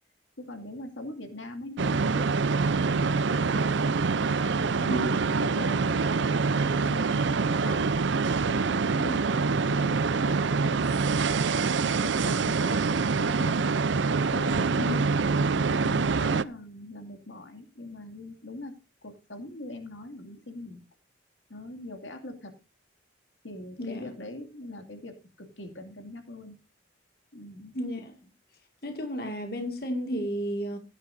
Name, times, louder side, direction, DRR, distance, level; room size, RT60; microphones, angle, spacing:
voice 1, 0.4-2.3 2.9-3.8 4.4-8.0 8.5-11.5 12.0-12.9 13.1-13.6 14.3-14.7 15.4-18.7 19.0-20.8 21.5-22.5 23.4-26.6 27.3-27.7, left 1 dB, 80° left, 2.4 m, -42 dB
sound 1, 1.8-16.4, right 4 dB, 75° right, 0.5 m, -25 dB
voice 2, 23.8-24.1 27.7-28.1 28.8-30.8, equal, 50° left, 2.0 m, -32 dB
16.5 x 10.5 x 2.6 m
head